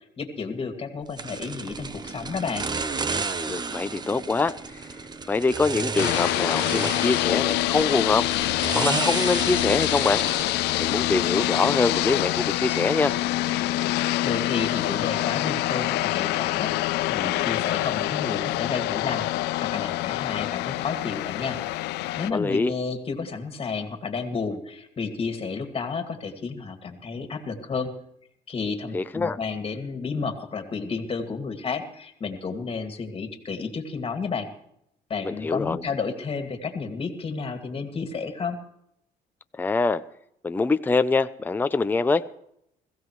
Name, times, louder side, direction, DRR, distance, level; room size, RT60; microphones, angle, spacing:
voice 1, 0.0-2.7 14.2-21.6 22.2-27.9 28.5-34.5 35.1-38.6, left 5 dB, 35° left, 7 dB, 2.2 m, -31 dB
sound 1, 1.2-11.3, right 4 dB, 25° right, 0.9 m, -32 dB
voice 2, 3.5-4.8 5.3-8.2 8.7-10.2 10.8-13.1 22.3-22.7 28.9-29.4 35.2-35.8 39.6-40.0 40.4-42.2, left 3 dB, 10° left, 11 dB, 0.5 m, -24 dB
sound 2, 6.0-22.3, left 16 dB, 85° left, 0.5 m, -26 dB
21.5 x 15.5 x 3.2 m, 0.75 s
cardioid pair, 110°, 17 cm